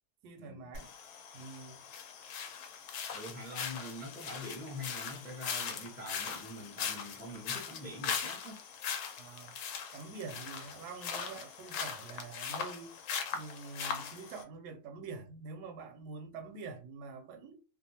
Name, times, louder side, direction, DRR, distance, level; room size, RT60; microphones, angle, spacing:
voice 1, 0.2-0.9 1.3-1.8 9.2-13.0 13.3-17.6, right 4 dB, 85° right, 1.1 m, -46 dB
sound 1, 0.7-14.4, left 7 dB, 85° left, 1.1 m, -40 dB
voice 2, 3.1-8.6, left 1 dB, 10° left, 0.6 m, -44 dB
2.6 x 2.3 x 2.8 m
omnidirectional pair, 1.7 m